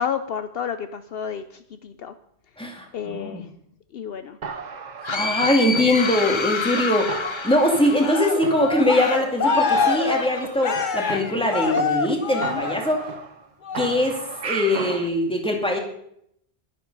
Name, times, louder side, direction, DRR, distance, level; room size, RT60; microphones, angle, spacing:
voice 1, 0.0-2.1 2.9-3.5 3.9-4.4 12.3-12.6, left 7 dB, 65° left, 10 dB, 0.8 m, -31 dB
voice 2, 2.6-3.4 5.1-7.1 7.4-13.1 13.8-15.8, left 1 dB, 5° left, 1 dB, 2.2 m, -22 dB
sound 1, 4.4-6.4 6.7-6.8 7.1-8.1 8.4-9.1 9.4-9.5 9.7-11.8 12.1-12.2 12.4-13.5 13.7-15.1, right 5 dB, 45° right, 0.8 m, -34 dB
sound 2, 5.0-8.7, left 4 dB, 35° left, 0.6 m, -28 dB
Cheering, 7.9-13.2 13.6-14.0, left 5 dB, 50° left, 1.1 m, -25 dB
11.5 x 9.8 x 5.4 m, 0.72 s
omnidirectional pair, 1.1 m